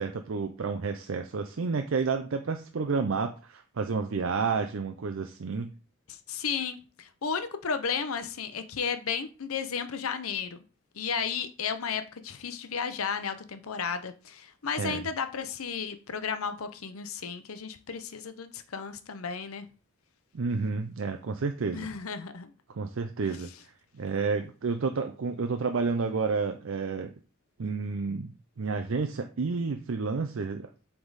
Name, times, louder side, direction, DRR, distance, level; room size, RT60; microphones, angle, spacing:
voice 1, 0.0-5.7 14.8-15.0 20.3-21.9 22.7-23.5 23.9-27.1 27.6-30.7, right 4 dB, 65° right, 0.5 m, -30 dB
voice 2, 6.1-10.6 10.9-19.7 21.7-22.5, left 6 dB, 90° left, 0.7 m, -33 dB
7.9 x 3.6 x 4.0 m
head